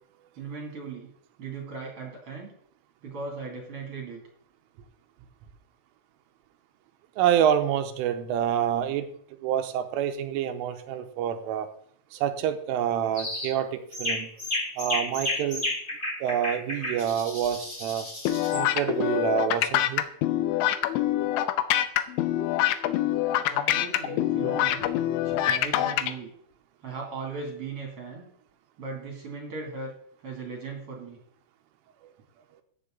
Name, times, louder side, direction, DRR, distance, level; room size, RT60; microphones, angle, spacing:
voice 1, 0.4-1.1 1.4-2.5 3.0-4.2 23.5-24.9 25.2-26.3 26.8-28.3 28.8-29.9 30.2-31.2, right 4 dB, 40° right, -1 dB, 2.3 m, -38 dB
voice 2, 7.2-9.1 9.4-11.7 12.1-14.3 14.8-15.6 16.2-18.1 18.5-20.0, right 10 dB, 80° right, 7 dB, 3.4 m, -27 dB
sound 1, 13.1-13.5 13.9-18.6, left 1 dB, 15° left, 2.4 m, -32 dB
sound 2, 18.3-26.1, left 13 dB, 80° left, 2.9 m, -25 dB
14.0 x 9.4 x 3.8 m, 0.63 s
omnidirectional pair, 5.7 m